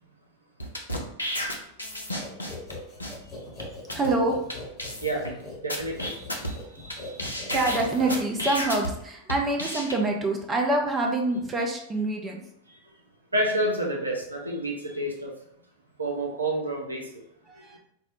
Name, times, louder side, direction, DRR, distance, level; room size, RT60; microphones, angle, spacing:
sound 1, 0.6-2.7 3.0-3.1 3.6-3.7 3.9-4.1 4.5-4.6 4.8-5.3 5.7-6.9 7.2-8.9 9.3-9.9, equal, 85° left, 0.5 m, -31 dB
sound 2, 2.2-8.7, left 2 dB, 35° left, 1.1 m, -41 dB
voice 1, 3.9-4.4 6.6-6.7 7.5-12.4 17.5-17.8, right 2 dB, 20° right, 1 dB, 0.6 m, -26 dB
voice 2, 5.6-6.1 6.5-7.2 13.3-15.3 16.0-17.0, right 1 dB, 80° right, 0 dB, 0.6 m, -29 dB
4.2 x 2.1 x 2.6 m, 0.73 s
figure-of-eight pair, 90°, 0 cm